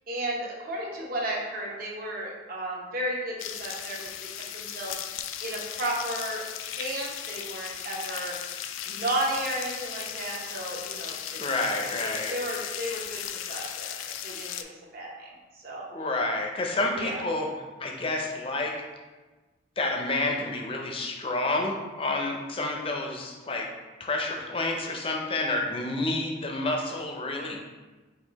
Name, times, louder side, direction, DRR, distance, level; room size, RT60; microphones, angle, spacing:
voice 1, 0.1-6.4 6.7-8.4 8.8-11.4 11.8-14.7 14.9-15.8 16.9-17.2, right 1 dB, 50° right, -3 dB, 0.9 m, -34 dB
sound 1, 3.4-14.6, left 10 dB, 85° left, 0.3 m, -37 dB
voice 2, 11.3-12.3 15.9-17.5 17.8-18.8 19.8-23.7 24.0-27.7, left 2 dB, 30° left, 1 dB, 0.5 m, -29 dB
4.4 x 2.6 x 4.0 m, 1.2 s
head